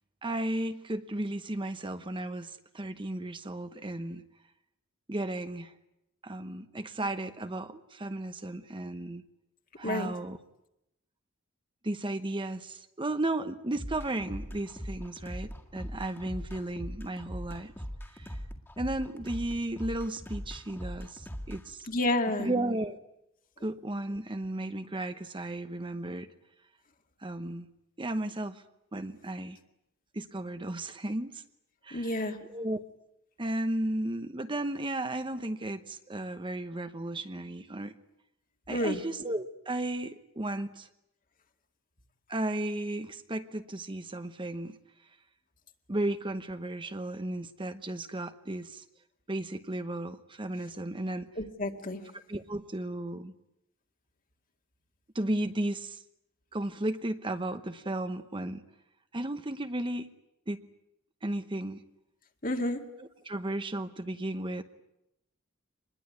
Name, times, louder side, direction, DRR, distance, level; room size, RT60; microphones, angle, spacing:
voice 1, 0.2-4.2 5.1-5.7 6.2-9.2 9.8-10.4 11.8-17.7 18.1-18.4 18.8-21.9 22.4-23.0 23.6-26.3 27.2-27.7 28.0-28.6 28.9-29.6 30.1-31.4 31.8-32.8 33.4-38.0 38.7-40.9 42.3-44.8 45.9-48.8 49.3-51.3 52.3-53.3 55.1-56.0 56.5-58.6 59.1-60.1 60.5-60.6 61.2-61.8 63.2-64.6, right 1 dB, 25° right, 9 dB, 0.9 m, -34 dB
sound 1, 13.8-21.6, equal, 10° left, 2.0 m, -40 dB
voice 2, 21.9-22.5 31.9-32.4 38.7-39.0 51.4-52.0 62.4-62.8, left 1 dB, 40° left, 5 dB, 2.2 m, -30 dB
25.0 x 21.0 x 9.5 m, 0.86 s
head